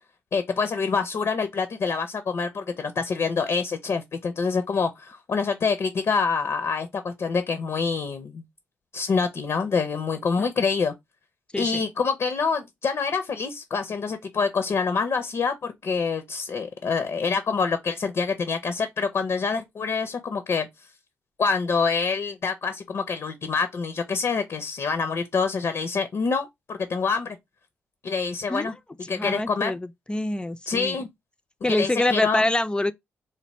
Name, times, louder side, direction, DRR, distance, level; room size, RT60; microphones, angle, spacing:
voice 1, 0.3-8.4 8.9-10.9 11.6-20.7 21.4-27.4 28.0-28.7 29.1-29.7 30.7-31.1 31.7-32.4, left 5 dB, 55° left, 0.6 m, -26 dB
voice 2, 29.1-31.0 31.6-32.9, left 1 dB, 15° left, 0.4 m, -25 dB
3.3 x 2.1 x 4.1 m
supercardioid pair, 55°, 6 cm